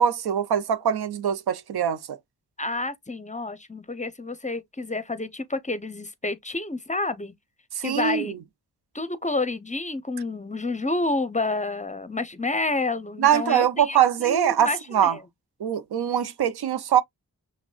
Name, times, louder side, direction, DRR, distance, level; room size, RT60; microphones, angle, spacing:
voice 1, 0.0-2.2 7.8-8.2 13.2-15.1 15.6-17.0, right 9 dB, 80° right, 0.6 m, -23 dB
voice 2, 2.6-7.3 7.8-8.4 8.9-15.2, left 2 dB, 20° left, 0.6 m, -29 dB
5.9 x 2.2 x 2.4 m
cardioid pair, 45°, 38 cm